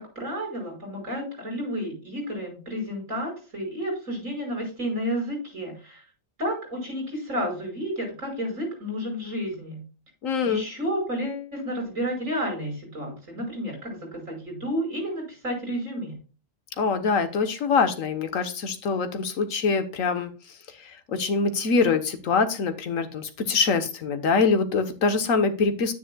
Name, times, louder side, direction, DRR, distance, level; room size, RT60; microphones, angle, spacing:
voice 1, 0.0-6.0 6.4-9.8 10.4-16.2, equal, 85° right, 1 dB, 6.1 m, -31 dB
voice 2, 10.2-10.6 16.8-20.3 20.8-25.9, left 4 dB, 85° left, 8 dB, 1.5 m, -24 dB
10.0 x 9.3 x 2.3 m, 0.34 s
omnidirectional pair, 1.3 m